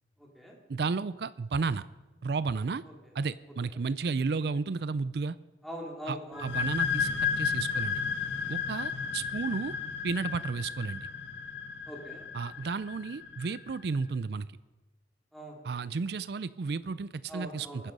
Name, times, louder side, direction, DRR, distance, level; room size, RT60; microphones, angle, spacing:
voice 1, 0.2-0.6 5.6-6.5 11.9-12.3 15.3-15.6 17.3-17.9, equal, ahead, -2 dB, 3.0 m, -42 dB
voice 2, 0.7-1.8 2.2-2.8 3.1-5.4 6.1-8.0 8.5-9.7 10.0-11.1 12.3-14.5 15.6-17.9, right 4 dB, 65° right, 16 dB, 0.4 m, -32 dB
sound 1, 6.3-13.8, left 6 dB, 85° left, 1.3 m, -33 dB
22.5 x 10.0 x 5.3 m, 1.1 s
head